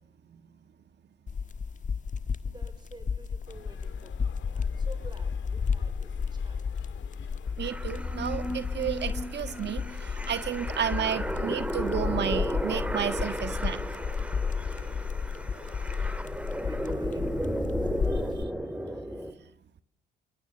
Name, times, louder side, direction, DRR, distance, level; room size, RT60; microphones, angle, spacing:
sound 1, 1.3-18.4, left 5 dB, 40° left, 1.5 m, -33 dB
voice 1, 2.4-6.9 14.6-15.9 16.5-18.4, right 3 dB, 20° right, 8 dB, 5.3 m, -51 dB
sound 2, 3.5-16.2, left 9 dB, 80° left, 3.8 m, -52 dB
sound 3, 7.6-19.3, equal, 5° right, 4.6 m, -34 dB
voice 2, 7.6-13.8, right 9 dB, 60° right, 10 dB, 1.7 m, -32 dB
28.5 x 23.0 x 7.0 m, 0.67 s
cardioid pair, 90°, 20 cm